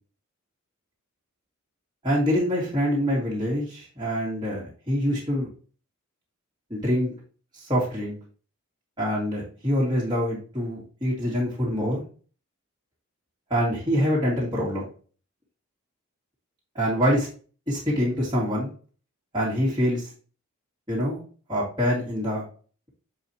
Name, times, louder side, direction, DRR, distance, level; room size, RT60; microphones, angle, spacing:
voice 1, 2.0-5.5 6.7-7.2 7.5-8.1 9.0-12.0 13.5-14.8 16.7-17.3 17.7-18.7 19.3-20.1 20.9-21.2 21.5-22.5, equal, 20° right, -7 dB, 2.0 m, -25 dB
7.2 x 4.7 x 2.9 m, 0.39 s
head